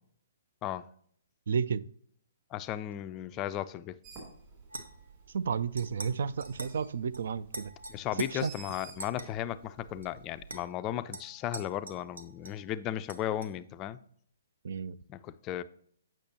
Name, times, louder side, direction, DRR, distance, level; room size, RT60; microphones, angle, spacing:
voice 1, 1.5-1.8 5.3-7.7 8.3-8.5 14.6-15.0, right 6 dB, 60° right, 0.3 m, -32 dB
voice 2, 2.5-4.0 7.9-14.0 15.1-15.6, left 12 dB, 25° left, 0.3 m, -35 dB
Bird, 4.0-10.7, right 5 dB, 35° right, 3.1 m, -53 dB
sound 1, 4.7-5.2 5.8-6.1 6.4-6.8 7.1-7.2 7.5-8.3 9.0-9.3 10.0-10.1 10.5-10.6 11.1-12.6 13.1-13.5, right 2 dB, 80° right, 1.0 m, -44 dB
8.2 x 6.0 x 2.8 m
figure-of-eight pair, 130°, 0 cm